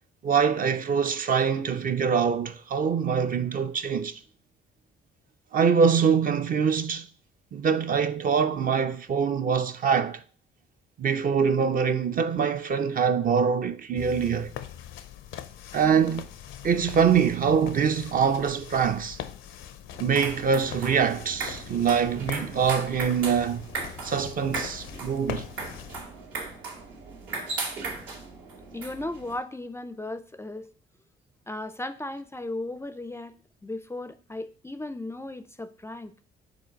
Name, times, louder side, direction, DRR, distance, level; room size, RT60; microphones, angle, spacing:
voice 1, 0.2-4.2 5.5-7.1 7.5-10.2 11.0-14.5 15.7-16.2 16.6-19.2 20.0-23.7 24.0-25.4, right 6 dB, 45° right, 0.5 m, -24 dB
sound 1, 14.0-26.0, left 10 dB, 80° left, 0.6 m, -42 dB
sound 2, 19.9-29.4, right 3 dB, 85° right, 2.2 m, -37 dB
voice 2, 28.7-30.7 31.5-33.3 33.6-36.1, left 2 dB, 15° left, 0.4 m, -36 dB
5.0 x 3.8 x 5.1 m
cardioid pair, 90°, 20 cm